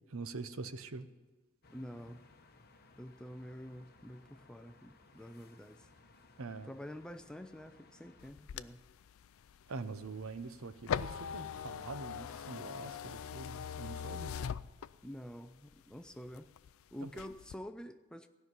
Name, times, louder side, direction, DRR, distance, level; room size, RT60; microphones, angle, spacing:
voice 1, 0.1-1.1 6.4-6.7 9.7-14.4 17.0-17.1, right 4 dB, 75° right, 0.7 m, -44 dB
sound 1, 1.6-8.3, left 3 dB, 45° left, 0.9 m, -62 dB
voice 2, 1.7-2.2 3.0-5.9 6.6-8.9 15.0-16.5 16.9-18.3, equal, 5° left, 0.4 m, -48 dB
sound 2, 8.2-15.3 15.7-16.7 17.1-17.5, left 7 dB, 70° left, 0.4 m, -41 dB
16.0 x 5.9 x 9.4 m
head